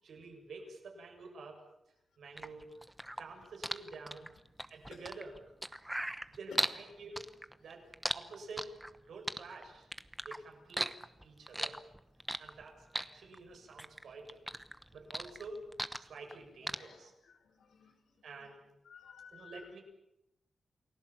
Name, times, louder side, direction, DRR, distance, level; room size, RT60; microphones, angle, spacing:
voice 1, 0.0-1.6 2.2-2.8 3.2-4.3 4.7-5.4 6.3-7.3 7.6-7.9 8.1-8.7 9.1-9.9 10.2-10.9 11.2-11.8 12.4-14.4 14.9-15.6 16.0-17.1 18.2-18.6 19.3-19.8, right 3 dB, 75° right, 2 dB, 7.2 m, -49 dB
sound 1, 2.4-6.8 7.2-9.0 9.3-10.4 10.7-12.6 12.9-14.0 14.3-16.4 16.7-16.8, right 1 dB, 5° right, 1.0 m, -37 dB
voice 2, 16.6-17.9 18.4-18.5 18.8-19.7, left 6 dB, 90° left, 5 dB, 5.1 m, -57 dB
29.0 x 20.0 x 7.6 m, 0.85 s
wide cardioid pair, 160°, 0 cm